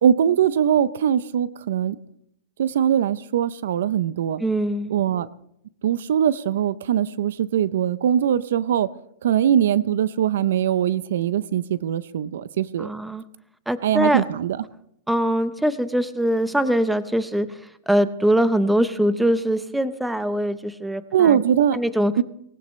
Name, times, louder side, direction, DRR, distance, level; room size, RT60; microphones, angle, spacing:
voice 1, 0.0-2.0 2.6-4.4 4.9-5.3 5.8-8.9 9.2-12.9 13.8-14.6 21.1-21.8 22.2-22.3, right 9 dB, 80° right, 18 dB, 0.6 m, -21 dB
voice 2, 4.4-4.9 12.8-13.2 13.7-14.2 15.1-17.5 17.9-21.4 21.7-22.1, equal, 5° right, 13 dB, 0.7 m, -22 dB
19.0 x 17.5 x 3.2 m, 0.75 s
hypercardioid pair, 140°, 0 cm